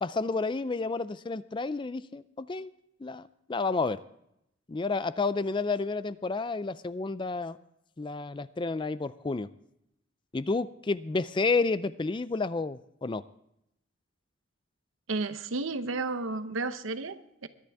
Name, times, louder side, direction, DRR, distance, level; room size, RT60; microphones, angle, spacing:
voice 1, 0.0-2.7 3.0-4.0 4.7-7.6 8.0-9.5 10.3-13.2, left 3 dB, 25° left, 16 dB, 0.4 m, -30 dB
voice 2, 15.1-17.5, right 3 dB, 90° right, 11 dB, 0.8 m, -32 dB
22.0 x 10.5 x 3.5 m, 0.79 s
head